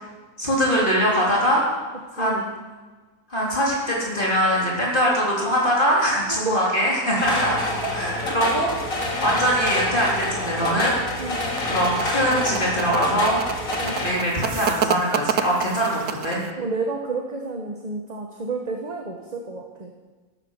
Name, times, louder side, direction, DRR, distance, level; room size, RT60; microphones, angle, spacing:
voice 1, 0.4-1.6 2.1-2.5 3.3-7.6 7.9-11.0 11.6-13.4 14.0-16.4, equal, 35° left, -5 dB, 3.8 m, -22 dB
voice 2, 2.2-2.5 6.0-6.1 6.4-6.7 11.2-11.4 13.8-14.0 16.6-19.9, right 3 dB, 30° right, 1 dB, 1.3 m, -30 dB
sound 1, 7.1-14.1, left 2 dB, 65° left, 2.8 m, -27 dB
sound 2, 11.3-16.5, right 8 dB, 75° right, 1.3 m, -28 dB
13.0 x 13.0 x 7.4 m, 1.3 s
omnidirectional pair, 1.5 m